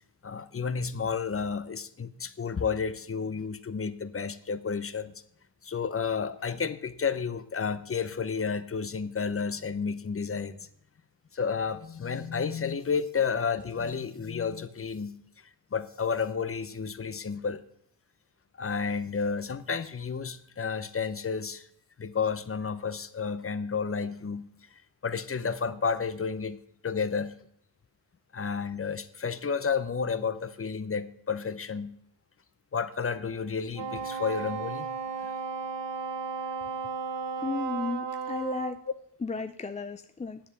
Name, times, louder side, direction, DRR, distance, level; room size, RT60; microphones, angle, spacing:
voice 1, 0.2-5.1 5.6-10.7 11.3-15.2 15.7-17.6 18.6-21.7 22.0-24.5 25.0-26.6 26.8-27.4 28.3-32.0 32.7-34.9 35.2-35.3, left 5 dB, 35° left, 0.8 m, -31 dB
Wind instrument woodwind instrument, 33.7-38.8, right 6 dB, 85° right, 1.7 m, -34 dB
voice 2, 37.4-38.8 39.2-40.4, left 3 dB, 15° left, 0.4 m, -34 dB
10.5 x 7.9 x 6.8 m
cardioid pair, 80°, 41 cm